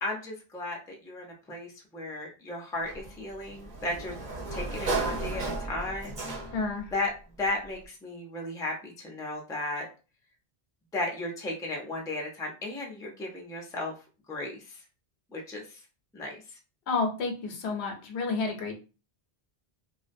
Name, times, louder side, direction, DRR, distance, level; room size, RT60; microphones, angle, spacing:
voice 1, 0.0-4.1 4.5-6.2 6.9-7.1 7.4-9.9 10.9-13.9 14.3-14.8 15.3-15.8 16.1-16.6, left 2 dB, 5° left, -1 dB, 0.4 m, -35 dB
Sliding door, 2.9-6.8, right 3 dB, 50° right, 0.8 m, -34 dB
voice 2, 6.5-6.9 16.9-18.7, left 4 dB, 90° left, 3 dB, 0.9 m, -30 dB
2.5 x 2.1 x 2.5 m, 0.33 s
omnidirectional pair, 1.0 m